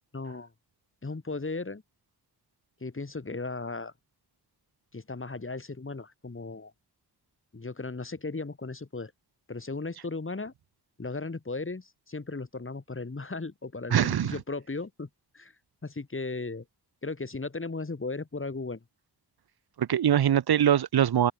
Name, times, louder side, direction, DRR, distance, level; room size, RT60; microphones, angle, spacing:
voice 1, 0.1-0.5 1.0-1.8 2.8-3.9 4.9-6.7 7.5-9.1 9.5-10.5 11.0-15.1 15.3-15.5 15.8-16.6 17.0-18.8, left 3 dB, 30° left, 2.7 m, -36 dB
voice 2, 13.9-14.4 19.8-21.3, right 10 dB, 75° right, 0.7 m, -23 dB
wide cardioid pair, 110°, 39 cm